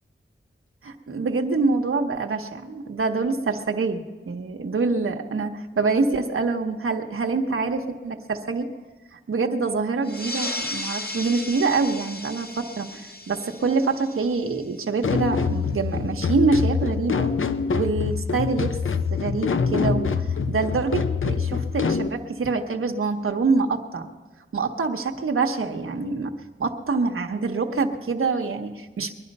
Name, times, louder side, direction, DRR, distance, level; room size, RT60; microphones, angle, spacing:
voice 1, 0.8-8.7 9.1-17.3 17.7-18.8 19.1-24.1 24.5-26.3 26.6-29.1, right 4 dB, 85° right, 3 dB, 1.1 m, -25 dB
sound 1, 10.0-15.1, left 2 dB, 50° left, 1.5 m, -35 dB
sound 2, 15.0-22.1, left 5 dB, 75° left, 0.7 m, -25 dB
22.0 x 11.0 x 5.4 m, 1.3 s
wide cardioid pair, 65°, 21 cm